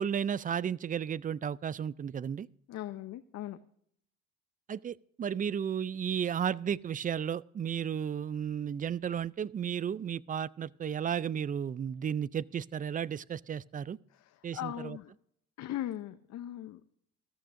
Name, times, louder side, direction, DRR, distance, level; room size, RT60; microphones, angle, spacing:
voice 1, 0.0-2.5 4.7-14.0 14.4-15.0, right 8 dB, 30° right, 0.4 m, -33 dB
voice 2, 2.7-3.6 14.1-15.1 15.6-16.8, left 12 dB, 65° left, 0.7 m, -39 dB
14.5 x 14.0 x 2.6 m
supercardioid pair, 80°, 30 cm